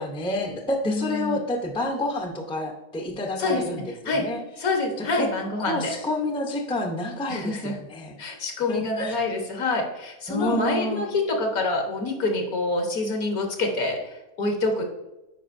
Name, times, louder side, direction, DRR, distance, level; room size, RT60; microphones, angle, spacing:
voice 1, 0.0-4.4 5.0-5.3 5.6-8.2 8.7-9.2 10.3-11.1, left 1 dB, 10° left, 2 dB, 0.3 m, -29 dB
voice 2, 0.8-1.4 3.4-4.3 4.6-5.9 7.3-7.7 8.2-14.8, left 2 dB, 75° left, 2 dB, 1.7 m, -26 dB
9.1 x 5.2 x 2.6 m, 0.97 s
omnidirectional pair, 1.6 m